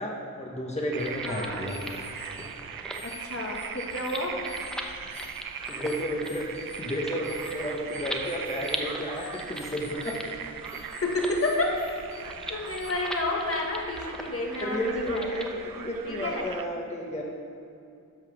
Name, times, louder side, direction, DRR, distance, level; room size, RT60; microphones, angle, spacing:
voice 1, 0.0-1.8 2.4-2.5 5.1-5.3 5.7-10.2 14.1-14.2 14.6-17.2, equal, 20° left, -2 dB, 1.1 m, -32 dB
sound 1, 0.7-15.5, equal, ahead, 0.7 m, -41 dB
sound 2, 0.9-16.7, right 7 dB, 85° right, 0.6 m, -40 dB
sound 3, 1.0-12.4 12.7-12.9, left 5 dB, 75° left, 1.4 m, -48 dB
voice 2, 1.2-1.6 3.0-4.3 11.0-11.7 12.5-15.3 16.1-16.5, left 2 dB, 45° left, -1 dB, 1.4 m, -30 dB
10.5 x 5.7 x 6.4 m, 2.5 s
wide cardioid pair, 105°, 33 cm